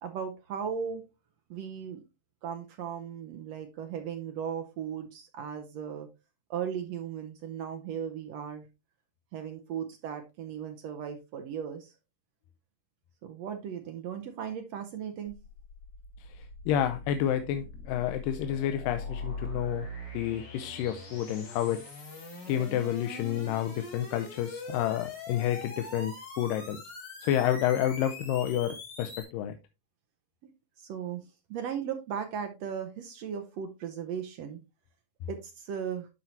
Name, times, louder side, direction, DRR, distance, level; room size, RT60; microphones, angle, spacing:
voice 1, 0.0-1.0 1.5-2.0 2.4-6.1 6.5-8.7 9.3-11.9 13.2-15.3 30.8-31.2 31.5-34.6 35.3-36.1, right 8 dB, 80° right, 1.5 m, -37 dB
sound 1, 15.3-29.2, left 2 dB, 60° left, 5.8 m, -42 dB
voice 2, 16.2-19.9 20.1-21.8 22.5-26.8 27.2-29.6, left 11 dB, 85° left, 2.2 m, -30 dB
12.0 x 4.5 x 2.7 m
omnidirectional pair, 3.9 m